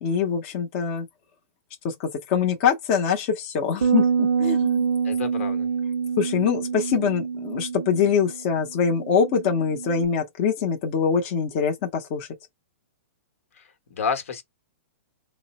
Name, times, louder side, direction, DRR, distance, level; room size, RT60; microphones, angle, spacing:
voice 1, 0.0-1.1 1.8-4.9 6.2-12.3, left 6 dB, 40° left, 0.7 m, -24 dB
sound 1, 3.8-10.1, right 6 dB, 85° right, 0.4 m, -26 dB
voice 2, 5.0-5.7 13.6-13.7 13.9-14.4, left 6 dB, 75° left, 1.0 m, -29 dB
3.7 x 2.0 x 4.1 m
hypercardioid pair, 150°, 7 cm